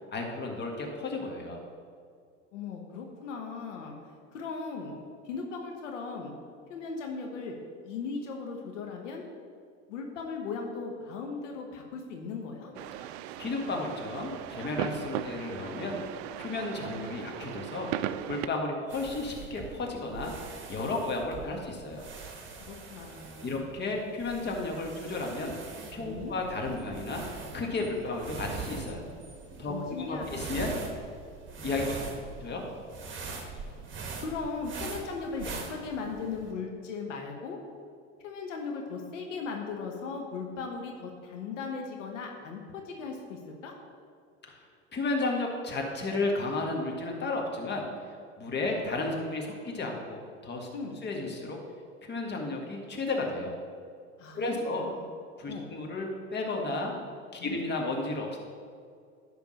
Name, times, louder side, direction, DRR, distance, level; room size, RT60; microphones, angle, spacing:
voice 1, 0.1-1.6 12.7-16.0 16.4-17.9 18.3-22.1 23.4-25.5 25.9-27.2 27.5-29.0 29.6-30.8 31.6-32.0 32.4-32.6 44.5-44.6 44.9-47.9 48.4-50.7 51.0-51.6 52.0-53.5 54.3-54.9 55.4-56.9 57.3-58.4, left 2 dB, 30° left, 1 dB, 1.6 m, -33 dB
voice 2, 2.5-4.0 4.3-5.0 5.2-6.3 6.7-7.6 7.8-9.3 9.9-12.7 22.7-23.6 26.0-26.3 29.7-30.4 34.2-37.6 38.2-43.7 48.4-48.5 50.7-51.0 54.2-55.0 55.5-55.7 57.4-57.6, left 4 dB, 75° left, 2 dB, 1.2 m, -38 dB
sound 1, 12.7-18.5, right 12 dB, 55° right, 0.5 m, -37 dB
sound 2, 18.9-36.5, right 4 dB, 30° right, 1.5 m, -42 dB
10.5 x 3.7 x 6.3 m, 2.2 s
hypercardioid pair, 85°, 37 cm